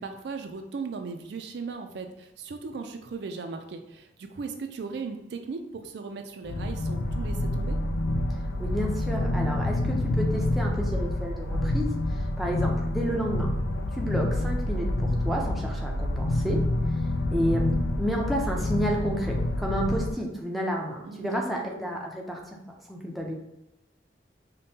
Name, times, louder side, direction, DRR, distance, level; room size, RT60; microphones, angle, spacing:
voice 1, 0.0-7.8 21.0-21.7, right 4 dB, 60° right, 6 dB, 0.4 m, -37 dB
sound 1, 6.4-20.1, left 1 dB, 75° left, 0.4 m, -27 dB
voice 2, 8.3-13.5 13.9-16.6 17.3-17.7 18.0-22.6 22.9-23.3, equal, ahead, -2 dB, 0.5 m, -31 dB
5.1 x 2.2 x 2.7 m, 0.91 s
head